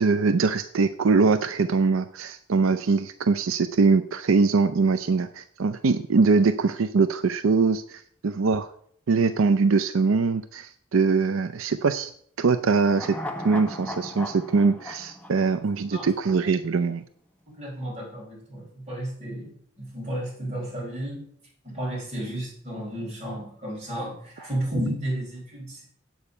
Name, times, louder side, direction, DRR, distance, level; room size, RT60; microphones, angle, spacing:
voice 1, 0.0-8.7 9.1-12.1 12.4-13.2 13.4-17.0, right 4 dB, 80° right, 10 dB, 0.5 m, -22 dB
sound 1, 12.9-16.3 16.6-16.7, left 1 dB, 5° left, 0.9 m, -37 dB
voice 2, 17.6-21.3 21.6-25.8, right 1 dB, 35° right, -4 dB, 5.0 m, -32 dB
8.6 x 8.1 x 5.5 m, 0.62 s
head